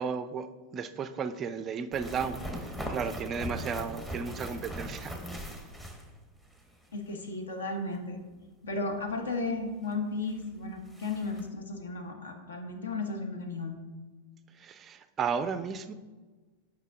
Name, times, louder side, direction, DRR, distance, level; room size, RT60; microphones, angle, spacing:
voice 1, 0.0-5.1 14.6-15.9, right 6 dB, 25° right, 12 dB, 0.4 m, -34 dB
sound 1, 1.9-6.6 6.8-6.9 9.9-10.0 10.4-10.5 10.8-11.5, right 1 dB, 5° left, 0.9 m, -39 dB
voice 2, 6.9-8.2 8.6-13.8, left 3 dB, 65° left, 5 dB, 1.0 m, -34 dB
8.1 x 5.1 x 3.6 m, 1.3 s
figure-of-eight pair, 90°, 0 cm